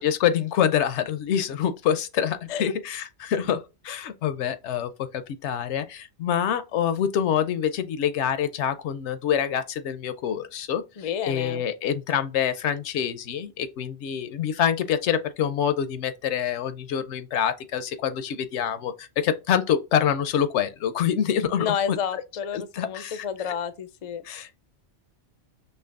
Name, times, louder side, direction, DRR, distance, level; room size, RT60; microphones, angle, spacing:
voice 1, 0.0-22.0 22.5-23.6 24.2-24.5, left 9 dB, 80° left, 0.9 m, -26 dB
voice 2, 11.0-11.6 21.6-24.2, left 7 dB, 50° left, 0.4 m, -30 dB
5.7 x 3.1 x 2.4 m
omnidirectional pair, 1.2 m